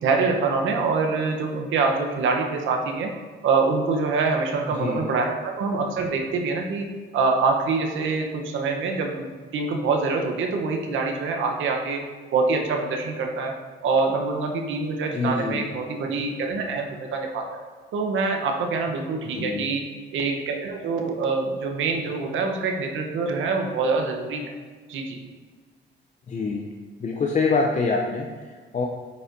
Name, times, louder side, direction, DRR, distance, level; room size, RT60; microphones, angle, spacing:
voice 1, 0.0-3.1 3.4-9.3 9.5-12.0 12.3-13.5 13.8-17.5 17.9-19.8 20.1-24.5 24.9-25.2, right 4 dB, 75° right, 3 dB, 0.9 m, -25 dB
voice 2, 4.7-5.1 15.1-15.7 19.3-19.7 26.3-26.7 27.0-28.9, left 4 dB, 35° left, 1 dB, 0.6 m, -26 dB
9.3 x 4.2 x 2.6 m, 1.5 s
cardioid pair, 90°, 20 cm